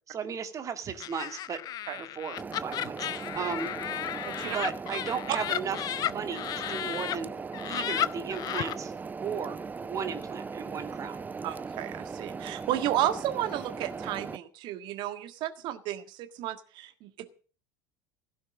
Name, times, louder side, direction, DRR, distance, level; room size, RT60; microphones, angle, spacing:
voice 1, 0.1-1.6 2.0-3.7 4.4-7.3 7.6-8.9 9.2-11.2, right 6 dB, 30° right, 7 dB, 2.2 m, -35 dB
Laughter, 1.0-7.2 7.5-8.7, left 12 dB, 40° left, 0.7 m, -34 dB
sound 1, 2.4-14.4, right 5 dB, 15° right, 0.6 m, -39 dB
voice 2, 4.2-4.6 11.4-17.3, right 12 dB, 50° right, 10 dB, 1.6 m, -33 dB
16.5 x 6.5 x 8.9 m, 0.40 s
figure-of-eight pair, 70°, 10 cm